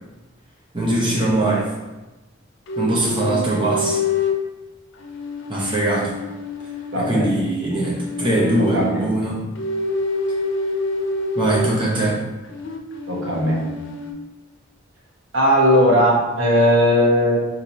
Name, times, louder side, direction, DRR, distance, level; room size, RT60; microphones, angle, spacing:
voice 1, 0.7-1.7 2.8-4.0 5.5-6.1 6.9-9.4 11.4-12.2, right 1 dB, 25° right, -5 dB, 0.8 m, -21 dB
sound 1, 2.7-4.5 5.0-7.3 7.9-9.1 9.6-11.8 12.5-14.1, left 3 dB, 60° left, 0.4 m, -27 dB
voice 2, 6.9-7.3 8.6-9.0 13.1-13.6 15.3-17.4, equal, 65° right, -5 dB, 1.0 m, -17 dB
3.0 x 2.8 x 4.0 m, 1.1 s
head